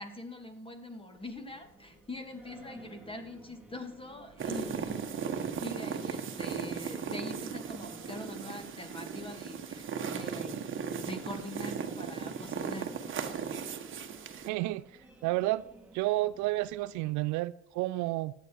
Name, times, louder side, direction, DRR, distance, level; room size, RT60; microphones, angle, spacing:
voice 1, 0.0-5.1 5.3-12.9, left 1 dB, 15° left, 2.4 m, -43 dB
Singing, 1.1-17.1, right 2 dB, 5° right, 2.4 m, -55 dB
sound 1, 4.4-14.5, right 6 dB, 35° right, 1.5 m, -37 dB
voice 2, 14.4-14.8 15.2-15.6 15.9-18.3, right 18 dB, 60° right, 0.5 m, -30 dB
14.0 x 9.4 x 4.6 m
hypercardioid pair, 70°, 33 cm